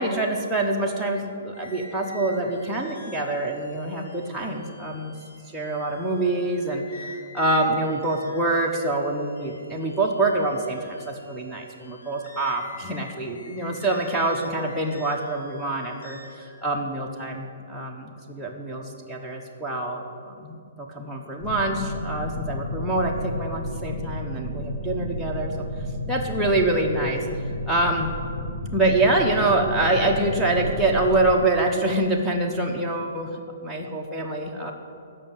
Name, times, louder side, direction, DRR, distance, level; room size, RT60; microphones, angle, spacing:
voice 1, 0.0-5.1 5.5-25.5 26.1-27.3 27.6-28.1 28.7-34.7, right 2 dB, 5° right, -3 dB, 1.1 m, -25 dB
sound 1, 1.5-16.5, left 2 dB, 80° left, 2.8 m, -47 dB
sound 2, 21.4-31.4, left 1 dB, 20° left, 1.9 m, -32 dB
10.5 x 6.6 x 9.0 m, 2.3 s
hypercardioid pair, 140°, 0 cm